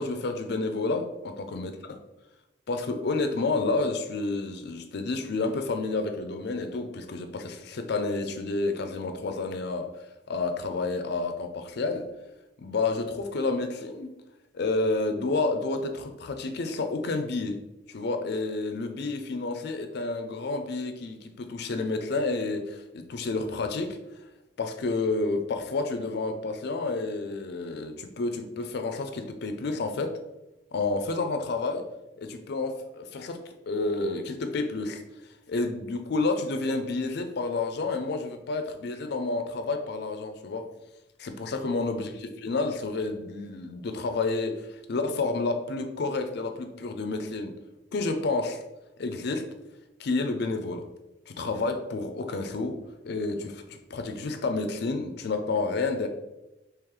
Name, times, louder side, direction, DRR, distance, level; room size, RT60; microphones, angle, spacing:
voice 1, 0.0-1.7 2.7-9.9 10.3-12.1 12.6-14.1 14.5-17.6 17.9-24.0 24.6-30.2 30.7-31.8 32.2-35.0 35.5-40.7 41.2-47.5 47.9-48.6 49.0-49.5 50.0-50.9 51.3-56.1, left 3 dB, 60° left, 7 dB, 0.4 m, -30 dB
3.1 x 3.0 x 3.8 m, 0.97 s
head